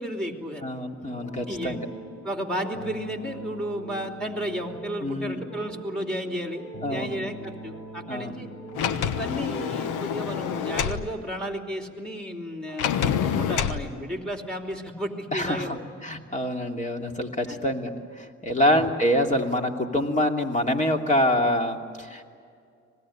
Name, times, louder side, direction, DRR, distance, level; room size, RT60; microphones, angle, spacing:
voice 1, 0.0-0.7 1.3-1.8 2.2-8.5 9.1-15.8 17.5-17.6 18.6-18.8, equal, 5° left, 3 dB, 3.0 m, -33 dB
voice 2, 0.6-1.9 5.0-5.4 6.8-7.1 8.1-8.3 15.3-22.2, left 1 dB, 25° left, 3 dB, 2.8 m, -26 dB
sound 1, 1.0-11.1, right 1 dB, 55° left, 4.1 m, -41 dB
Sliding door, 8.7-11.0 12.8-13.8, left 8 dB, 90° left, 1.1 m, -27 dB
26.0 x 19.5 x 9.9 m, 2.2 s
cardioid pair, 90°, 30 cm